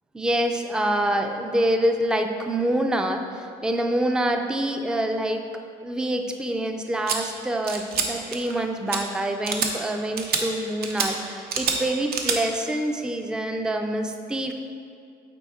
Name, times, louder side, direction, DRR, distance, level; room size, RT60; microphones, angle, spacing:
voice 1, 0.1-5.4 5.8-14.5, right 1 dB, 5° right, 5 dB, 0.4 m, -26 dB
sound 1, 7.1-7.2 7.7-8.1 8.3-8.6 8.9-9.0 9.4-9.7 10.2-10.4 10.8-11.1 11.5-11.8 12.1-12.4, right 6 dB, 65° right, 0.8 m, -26 dB
8.3 x 4.2 x 4.2 m, 2.4 s
cardioid pair, 110°, 17 cm